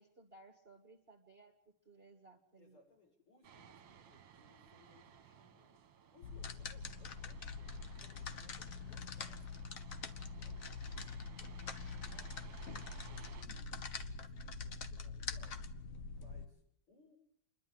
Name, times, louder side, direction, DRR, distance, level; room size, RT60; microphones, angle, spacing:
voice 1, 0.0-1.6 1.9-2.8, right 3 dB, 30° right, 2 dB, 1.8 m, -60 dB
voice 2, 2.6-5.7 6.1-9.5 9.9-15.6 16.0-17.2, left 2 dB, 85° left, 0 dB, 7.9 m, -68 dB
sound 1, 3.4-13.4, right 8 dB, 65° right, 1.9 m, -60 dB
sound 2, 6.2-16.4, left 4 dB, 45° left, 1.4 m, -45 dB
28.5 x 11.5 x 9.8 m, 0.71 s
omnidirectional pair, 2.3 m